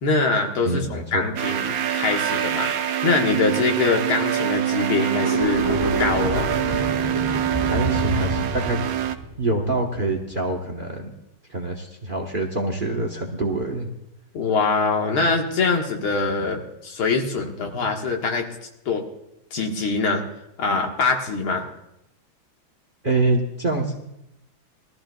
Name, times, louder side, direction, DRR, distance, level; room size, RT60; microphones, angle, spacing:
voice 1, 0.0-6.5 14.3-18.5 18.9-19.0 19.5-20.2 20.6-21.6, left 4 dB, 85° left, 2 dB, 2.4 m, -23 dB
voice 2, 0.6-1.2 7.6-8.9 9.4-11.1 11.5-13.9 23.0-23.9, right 2 dB, 35° right, 3 dB, 0.9 m, -25 dB
sound 1, 1.3-9.1, right 10 dB, 70° right, 0.8 m, -25 dB
sound 2, 5.2-10.4, equal, 15° right, 1.4 m, -28 dB
21.5 x 14.0 x 2.3 m, 0.85 s
omnidirectional pair, 2.2 m